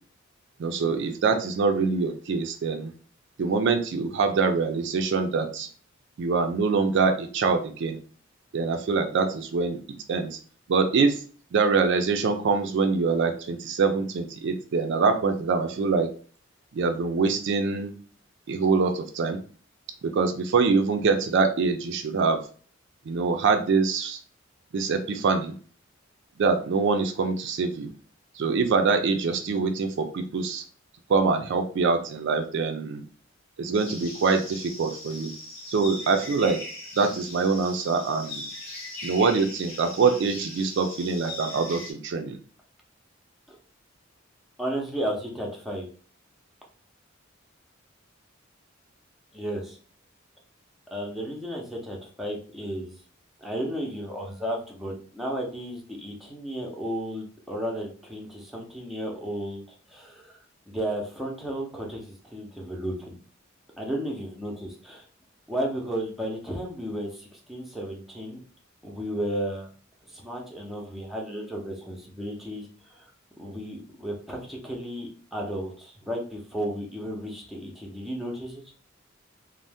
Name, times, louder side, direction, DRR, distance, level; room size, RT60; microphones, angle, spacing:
voice 1, 0.6-2.9 3.4-5.7 6.2-8.0 8.5-9.8 10.1-10.4 10.7-11.2 11.5-16.1 16.7-17.9 18.5-19.4 20.0-22.4 23.1-24.2 24.7-25.5 26.4-27.9 28.4-30.6 31.1-33.0 33.6-35.3 35.7-36.6 37.0-38.4 39.0-42.4, right 4 dB, 65° right, 7 dB, 0.4 m, -24 dB
sound 1, 33.7-41.9, left 2 dB, 75° left, 1.0 m, -40 dB
voice 2, 44.6-45.9 49.3-49.8 50.9-52.9 53.4-60.4 60.7-63.2 63.8-65.1 65.5-68.4 68.8-69.7 70.1-78.6, right 1 dB, ahead, -2 dB, 0.6 m, -33 dB
2.6 x 2.0 x 3.3 m, 0.41 s
head